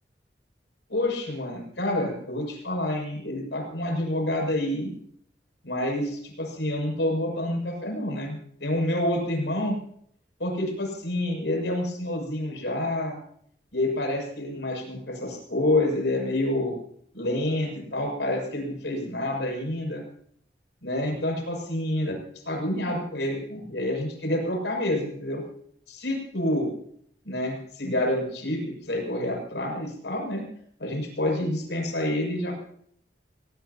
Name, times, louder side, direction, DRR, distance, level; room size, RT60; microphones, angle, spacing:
voice 1, 0.9-4.9 5.6-9.7 10.4-13.2 13.7-16.8 17.1-20.0 20.8-22.1 22.5-25.4 25.9-26.7 27.3-30.5 30.8-32.5, left 1 dB, 85° left, 1 dB, 6.9 m, -28 dB
23.0 x 19.5 x 2.9 m, 0.65 s
head